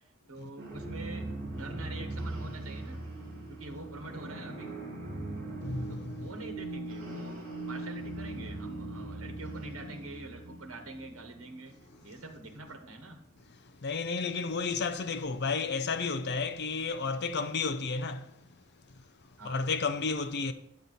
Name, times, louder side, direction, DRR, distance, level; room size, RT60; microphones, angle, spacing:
voice 1, 0.3-3.1 3.5-4.8 5.9-11.7 12.0-13.2 19.4-19.6, right 2 dB, 85° right, 1.2 m, -45 dB
sound 1, 0.6-13.1, right 2 dB, 45° right, 3.0 m, -40 dB
voice 2, 5.6-6.3 13.5-18.3 19.4-20.5, left 4 dB, 55° left, 0.6 m, -32 dB
9.2 x 8.7 x 4.1 m
head